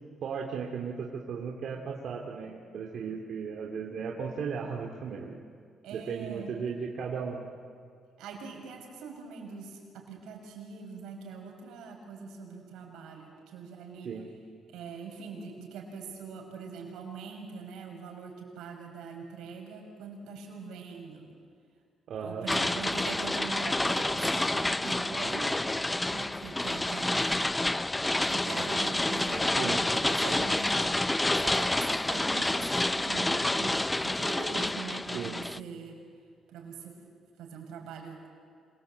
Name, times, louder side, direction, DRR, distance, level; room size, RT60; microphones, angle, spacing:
voice 1, 0.2-5.4 5.9-7.4 14.0-14.2 22.1-22.5 29.6-30.5 35.1-35.4, right 6 dB, 65° right, 0 dB, 2.5 m, -36 dB
voice 2, 5.8-6.5 8.2-14.2 14.7-21.3 22.2-25.6 26.1-27.6 28.2-30.9 31.4-36.0 36.5-37.0 37.4-38.3, right 5 dB, 90° right, 2 dB, 5.9 m, -42 dB
sound 1, 22.5-35.6, left 2 dB, 15° left, 0.5 m, -28 dB
27.0 x 23.0 x 8.3 m, 2.2 s
cardioid pair, 90°, 0 cm